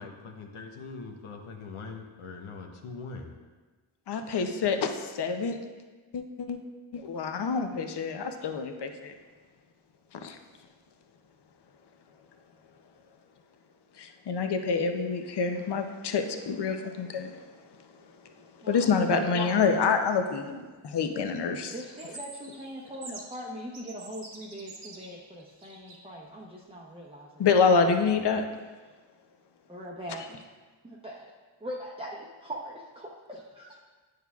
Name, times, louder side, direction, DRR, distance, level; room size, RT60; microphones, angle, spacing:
voice 1, 0.0-3.3 28.1-28.4, left 4 dB, 85° left, 4 dB, 0.9 m, -42 dB
voice 2, 4.1-5.6 6.1-6.6 6.9-9.1 10.1-10.4 14.0-17.3 18.7-20.6 20.9-21.8 27.4-28.4 30.1-30.3, left 5 dB, 55° left, 6 dB, 0.6 m, -27 dB
voice 3, 18.6-20.0 21.7-27.5 29.7-30.4 30.8-31.3 31.6-33.8, equal, 10° right, -5 dB, 0.7 m, -41 dB
sound 1, 21.8-23.4 23.7-26.0, right 3 dB, 75° right, 1.2 m, -46 dB
9.1 x 6.5 x 2.3 m, 1.3 s
wide cardioid pair, 90°, 49 cm